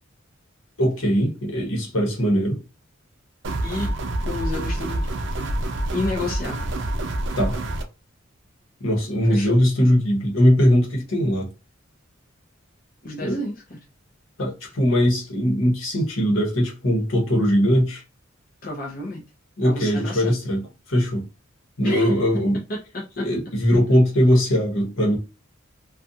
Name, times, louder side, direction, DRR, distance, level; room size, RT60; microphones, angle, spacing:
voice 1, 0.8-2.6 7.4-7.6 8.8-11.5 13.2-13.4 14.4-18.0 19.6-21.2 21.8-22.6 23.2-25.2, equal, 80° left, 1.1 m, -20 dB
sound 1, 3.4-7.8, right 1 dB, 60° right, 0.5 m, -27 dB
voice 2, 3.6-3.9 4.3-5.1 5.9-6.7 9.3-9.6 13.0-13.6 18.6-19.2 19.6-20.3 21.8-22.1 22.9-23.3, left 2 dB, 45° left, 0.7 m, -30 dB
2.5 x 2.3 x 2.6 m
head